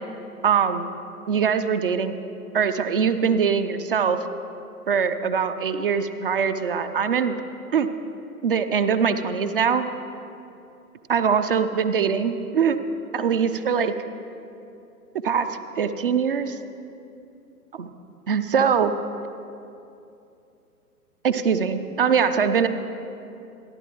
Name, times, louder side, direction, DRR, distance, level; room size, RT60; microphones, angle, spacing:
voice 1, 0.4-0.9 1.3-2.2 2.5-4.2 4.9-7.3 7.7-7.9 8.4-9.9 11.1-12.8 13.1-13.9 15.2-16.6 17.7-17.9 18.3-18.9 21.2-22.7, right 6 dB, 35° right, 10 dB, 0.5 m, -22 dB
26.0 x 10.5 x 3.0 m, 2.7 s
figure-of-eight pair, 120°, 47 cm